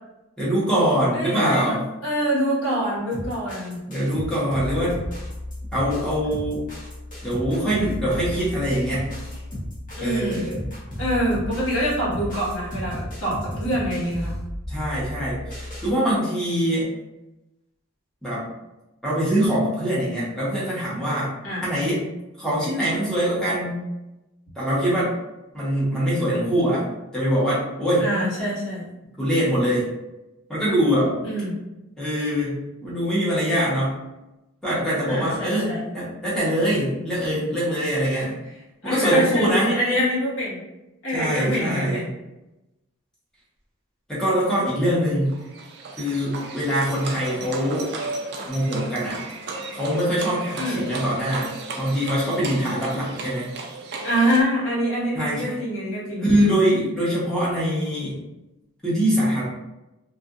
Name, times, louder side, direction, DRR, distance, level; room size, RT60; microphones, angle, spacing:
voice 1, 0.4-1.8 3.9-5.0 5.7-6.6 7.2-9.1 10.0-10.6 14.7-16.9 18.2-18.5 19.0-21.3 21.6-22.0 22.4-23.8 24.6-25.1 25.5-26.9 27.1-28.1 29.2-29.9 30.5-31.2 32.0-34.0 34.6-38.4 38.8-39.7 41.1-42.0 44.1-45.4 46.0-47.9 48.5-49.2 49.7-53.5 55.1-55.6 56.2-58.2 58.8-59.4, equal, 5° left, -8 dB, 0.9 m, -23 dB
voice 2, 1.1-1.8 2.0-3.8 10.0-10.4 11.0-14.3 21.4-21.7 28.0-28.9 31.2-31.5 35.1-35.8 38.1-38.2 38.8-40.6 41.0-42.1 50.6-50.9 54.0-56.3, equal, 80° left, -8 dB, 1.5 m, -25 dB
sound 1, 3.1-15.9, left 1 dB, 40° left, 1.0 m, -34 dB
Livestock farm animals working animals, 45.3-54.4, right 3 dB, 55° right, 0.4 m, -35 dB
2.7 x 2.5 x 2.4 m, 0.97 s
head